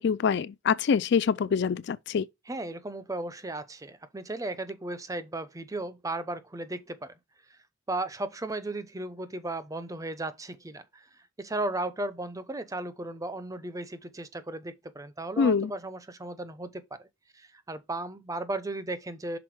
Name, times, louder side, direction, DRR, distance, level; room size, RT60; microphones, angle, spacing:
voice 1, 0.0-2.3 15.4-15.7, left 6 dB, 55° left, 0.4 m, -25 dB
voice 2, 2.5-7.1 7.9-11.1 11.4-17.1 17.3-19.4, right 2 dB, 15° right, 0.6 m, -35 dB
6.0 x 4.3 x 4.7 m
head